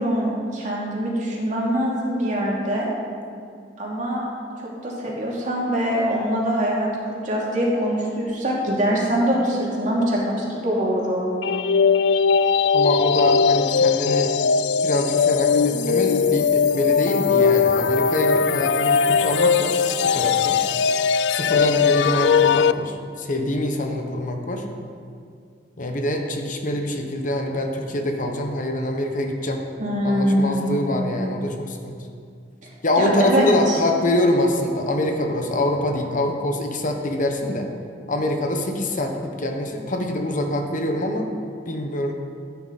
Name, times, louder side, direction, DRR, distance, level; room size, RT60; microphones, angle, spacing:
voice 1, 0.0-2.9 3.8-4.3 4.6-6.9 7.2-11.3 29.8-30.7 33.0-33.8, equal, 45° right, -4 dB, 2.6 m, -23 dB
sound 1, 11.4-22.7, left 6 dB, 70° left, 0.3 m, -19 dB
voice 2, 12.7-14.3 14.8-20.6 21.3-24.6 25.8-29.6 30.0-32.0 32.8-37.7 38.1-41.3 41.7-42.1, left 1 dB, 50° left, 4 dB, 1.1 m, -24 dB
14.0 x 9.6 x 4.1 m, 2.3 s
head